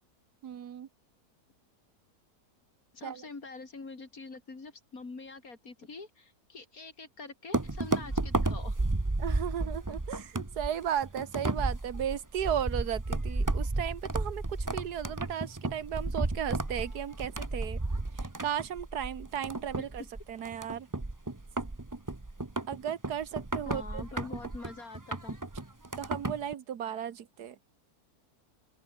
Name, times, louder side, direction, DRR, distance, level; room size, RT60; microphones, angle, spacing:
voice 1, 0.4-0.9 3.0-3.3 9.2-17.8 18.1-20.9 22.7-24.3 26.0-27.6, right 9 dB, 90° right, 1.7 m, -35 dB
voice 2, 2.9-8.8 20.0-20.1 23.7-25.4, left 3 dB, 65° left, 3.8 m, -45 dB
sound 1, 7.5-26.5, right 2 dB, 15° right, 1.0 m, -33 dB
open air
omnidirectional pair, 1.6 m